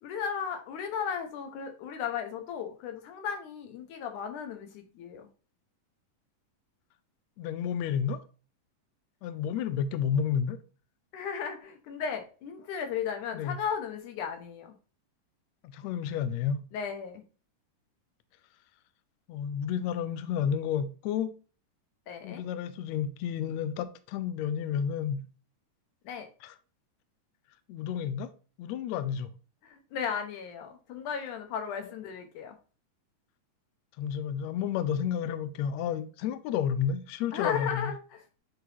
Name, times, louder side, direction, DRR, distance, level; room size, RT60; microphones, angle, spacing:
voice 1, 0.0-5.3 11.1-14.8 16.7-17.2 22.1-22.4 26.0-26.3 29.6-32.6 37.3-38.4, left 7 dB, 70° left, 2.5 m, -35 dB
voice 2, 7.4-8.2 9.2-10.6 13.3-13.6 15.6-16.6 19.3-21.3 22.2-25.2 26.4-26.5 27.7-28.3 28.6-29.3 34.0-37.9, left 8 dB, 90° left, 1.5 m, -31 dB
9.1 x 4.0 x 2.8 m
omnidirectional pair, 3.9 m